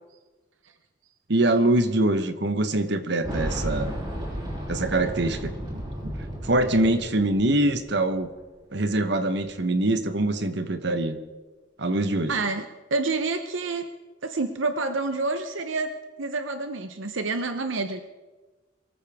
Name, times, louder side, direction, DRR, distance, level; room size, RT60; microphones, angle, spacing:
voice 1, 1.3-3.9 4.7-5.5 6.4-8.3 8.7-11.2 11.8-12.4, right 1 dB, 60° right, 9 dB, 1.1 m, -24 dB
Boom, 3.2-8.0 8.2-8.3 9.5-9.6, equal, 25° right, 3.2 m, -33 dB
voice 2, 12.3-12.6 12.9-13.8 14.2-15.9 16.2-18.0, right 3 dB, 75° right, 8 dB, 0.8 m, -28 dB
23.0 x 14.0 x 3.6 m, 1.2 s
head